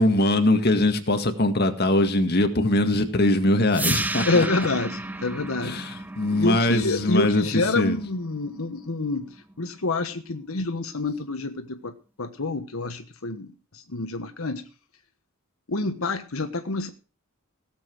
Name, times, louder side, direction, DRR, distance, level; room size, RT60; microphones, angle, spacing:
voice 1, 0.0-4.5 5.6-8.0, left 1 dB, 50° left, 6 dB, 1.9 m, -22 dB
sound 1, 3.7-9.7, right 2 dB, 10° right, 0.6 m, -33 dB
voice 2, 4.2-5.8 6.3-14.6 15.7-16.9, left 2 dB, 80° left, 7 dB, 1.2 m, -27 dB
17.0 x 7.5 x 6.2 m, 0.35 s
head